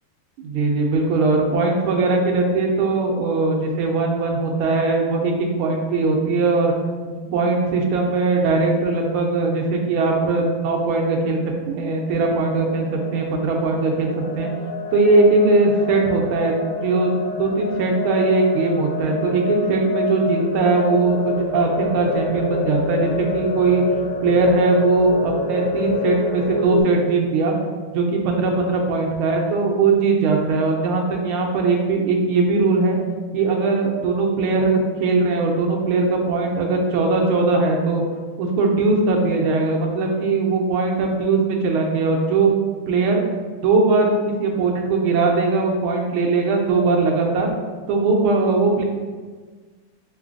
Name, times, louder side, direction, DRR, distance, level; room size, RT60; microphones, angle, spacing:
voice 1, 0.4-6.7 7.1-11.4 11.7-14.5 14.9-23.8 24.2-27.5 27.9-33.0 33.3-38.0 38.4-42.6 42.9-43.2 43.6-44.1 44.4-47.5 47.9-48.8, right 3 dB, 80° right, 1 dB, 1.4 m, -20 dB
sound 1, 12.5-26.8, left 4 dB, 80° left, 1.6 m, -27 dB
3.9 x 3.8 x 2.5 m, 1.4 s
omnidirectional pair, 2.3 m